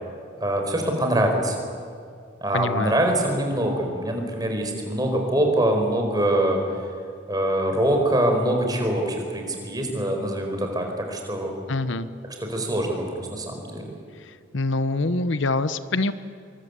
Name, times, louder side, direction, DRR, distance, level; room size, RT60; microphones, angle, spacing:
voice 1, 0.3-1.6 2.4-6.6 7.3-11.5 12.4-13.9, right 1 dB, 20° right, 3 dB, 4.6 m, -24 dB
voice 2, 2.5-3.0 11.7-12.1 14.5-16.1, left 2 dB, 75° left, 13 dB, 0.9 m, -24 dB
26.0 x 24.0 x 8.2 m, 2.3 s
head